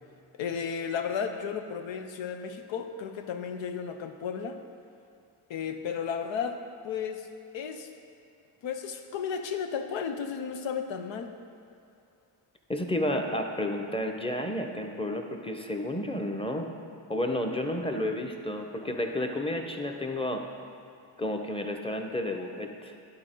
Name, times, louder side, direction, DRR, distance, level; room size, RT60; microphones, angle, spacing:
voice 1, 0.3-4.6 5.5-6.6 6.8-7.3 7.5-7.9 8.6-11.3, left 7 dB, 75° left, 6 dB, 0.7 m, -33 dB
voice 2, 12.7-16.7 17.1-20.4 21.2-22.9, left 1 dB, 10° left, 3 dB, 0.9 m, -31 dB
10.5 x 4.4 x 3.8 m, 2.6 s
supercardioid pair, 40°, 45 cm